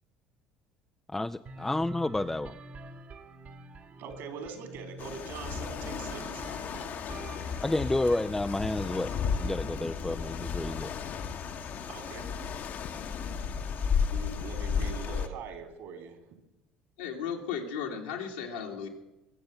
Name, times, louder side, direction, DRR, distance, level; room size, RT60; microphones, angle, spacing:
voice 1, 1.1-2.6 7.6-9.1 9.4-10.9, left 2 dB, 10° left, 9 dB, 0.4 m, -30 dB
sound 1, 1.5-11.3, right 3 dB, 40° right, 1.5 m, -48 dB
voice 2, 4.0-6.4 11.9-12.4 14.1-16.2, right 5 dB, 60° right, 7 dB, 2.9 m, -42 dB
sound 2, 5.0-15.3, left 6 dB, 50° left, 1.2 m, -34 dB
voice 3, 17.0-18.9, left 7 dB, 80° left, 1 dB, 2.2 m, -35 dB
21.5 x 7.7 x 6.7 m, 0.96 s
figure-of-eight pair, 60°, 4 cm